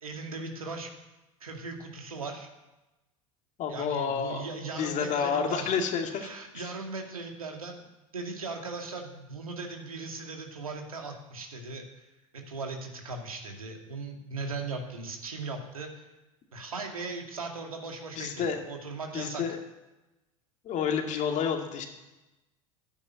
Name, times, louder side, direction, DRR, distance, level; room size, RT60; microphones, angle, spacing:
voice 1, 0.0-0.9 1.4-2.5 3.7-5.7 6.1-7.9 8.1-11.8 12.3-16.1 16.5-19.4, right 3 dB, 85° right, 2 dB, 2.3 m, -38 dB
voice 2, 3.6-4.5 4.7-6.3 18.2-18.6 19.1-19.6 20.6-21.9, left 6 dB, 45° left, 3 dB, 2.3 m, -29 dB
11.0 x 9.0 x 9.5 m, 1.0 s
hypercardioid pair, 75°, 18 cm